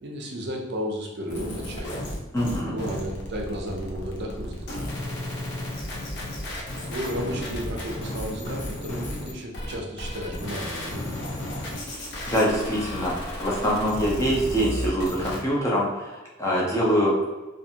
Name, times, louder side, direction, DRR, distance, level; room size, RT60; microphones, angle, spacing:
voice 1, 0.0-1.9 2.6-5.0 6.9-11.2, equal, 55° right, 1 dB, 0.5 m, -33 dB
sound 1, 1.3-15.4, left 1 dB, 55° left, 0.6 m, -33 dB
voice 2, 2.3-2.8 12.3-13.1 13.4-17.1, equal, 15° left, -5 dB, 0.6 m, -24 dB
2.5 x 2.5 x 2.7 m, 1.2 s
head